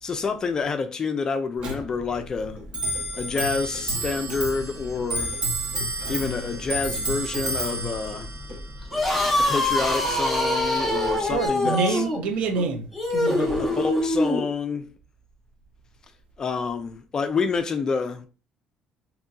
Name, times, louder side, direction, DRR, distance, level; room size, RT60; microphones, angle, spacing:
voice 1, 0.0-2.6 3.2-5.3 6.1-8.3 9.5-12.0 13.6-14.9 16.4-18.3, left 5 dB, 30° left, 0.3 m, -28 dB
Clock, 1.6-11.5, right 1 dB, 50° right, 0.9 m, -31 dB
sound 1, 8.8-14.5, left 1 dB, 5° left, 0.6 m, -24 dB
voice 2, 11.2-13.6, right 5 dB, 75° right, 0.5 m, -27 dB
2.9 x 2.6 x 2.3 m
cardioid pair, 115°, 2 cm